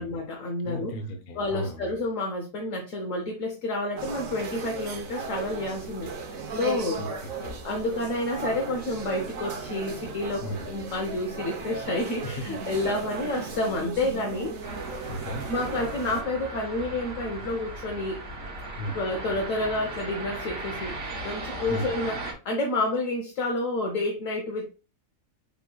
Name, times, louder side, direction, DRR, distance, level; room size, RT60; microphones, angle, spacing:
voice 1, 0.0-0.9 1.4-7.1 7.6-14.6 15.5-18.2 18.9-21.0 21.2-22.2 22.4-24.7, left 2 dB, 65° left, 1.2 m, -29 dB
voice 2, 0.6-1.9 7.0-7.6 10.4-10.7 12.2-12.5 15.1-15.5 18.8-19.0 21.7-22.0, equal, 50° left, 0.8 m, -35 dB
sound 1, 4.0-16.2, right 4 dB, 70° right, 1.3 m, -36 dB
sound 2, 14.6-22.3, right 2 dB, 90° right, 2.0 m, -37 dB
6.7 x 3.1 x 2.2 m
omnidirectional pair, 1.5 m